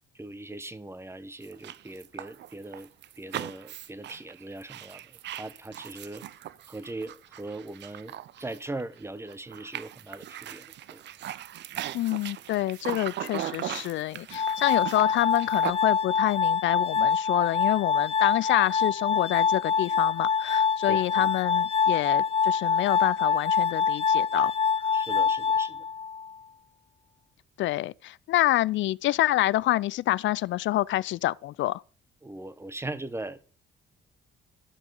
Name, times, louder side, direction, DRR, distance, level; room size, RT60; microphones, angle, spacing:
voice 1, 0.1-2.9 3.2-6.3 6.7-11.0 20.9-21.3 24.9-25.8 32.2-33.4, right 2 dB, 15° right, 0.8 m, -40 dB
sound 1, 1.4-9.0 9.3-15.7, right 12 dB, 60° right, 0.5 m, -39 dB
voice 2, 11.9-24.5 27.6-31.8, left 15 dB, 70° left, 0.4 m, -27 dB
Glass, 14.3-26.3, left 6 dB, 30° left, 0.6 m, -25 dB
12.5 x 5.9 x 5.4 m
cardioid pair, 90°, 20 cm